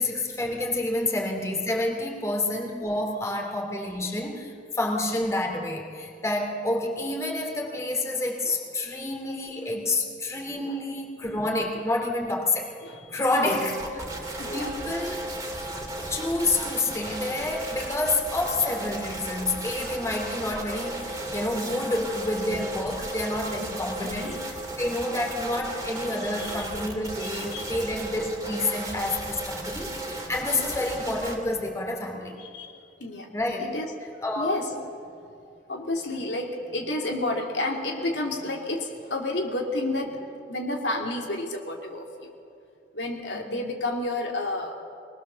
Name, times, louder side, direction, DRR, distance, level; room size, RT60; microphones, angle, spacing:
voice 1, 0.0-12.7 13.1-14.0 14.5-15.3 16.1-24.4 24.8-32.4 33.3-33.7 34.2-34.5 43.3-43.6, left 2 dB, 15° left, 0 dB, 2.8 m, -29 dB
voice 2, 12.8-13.5 14.0-14.1 14.4-14.7 15.7-15.9 24.0-24.7 26.1-26.7 27.5-27.7 29.6-30.3 32.4-33.3 33.6-35.2 35.7-42.3 42.9-44.7, left 2 dB, 75° left, 0 dB, 2.7 m, -32 dB
sound 1, 13.3-31.4, right 1 dB, 20° right, 2.8 m, -35 dB
23.5 x 20.0 x 6.9 m, 2.4 s
head